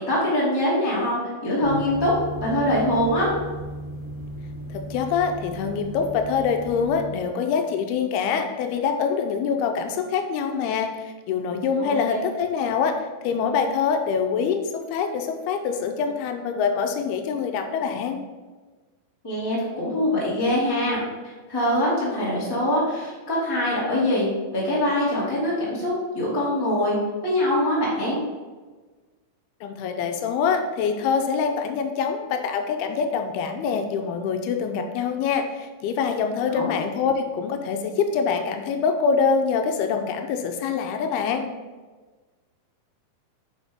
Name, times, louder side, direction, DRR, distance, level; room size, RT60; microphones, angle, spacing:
voice 1, 0.1-2.1 2.4-3.3 11.8-12.2 19.2-21.0 21.5-26.9 27.2-28.2 36.5-36.7, left 1 dB, 10° left, -7 dB, 1.4 m, -23 dB
sound 1, 1.6-7.0, right 1 dB, 50° left, 2.3 m, -35 dB
voice 2, 4.7-13.0 13.2-18.2 29.6-41.5, left 6 dB, 85° left, 5 dB, 2.6 m, -25 dB
8.2 x 5.8 x 3.6 m, 1.3 s
omnidirectional pair, 4.4 m